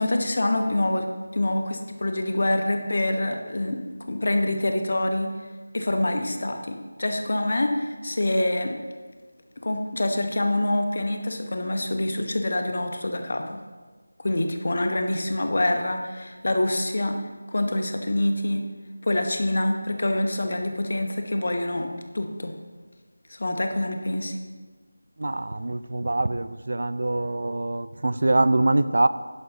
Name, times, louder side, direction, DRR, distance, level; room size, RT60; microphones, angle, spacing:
voice 1, 0.0-3.8 4.1-5.3 5.7-8.8 9.6-13.6 14.2-17.2 17.5-18.7 19.0-22.5 23.3-24.4, left 1 dB, 50° left, 5 dB, 1.1 m, -26 dB
voice 2, 25.2-29.1, right 2 dB, 55° right, 14 dB, 0.4 m, -24 dB
11.0 x 11.0 x 2.9 m, 1.4 s
figure-of-eight pair, 165°, 0 cm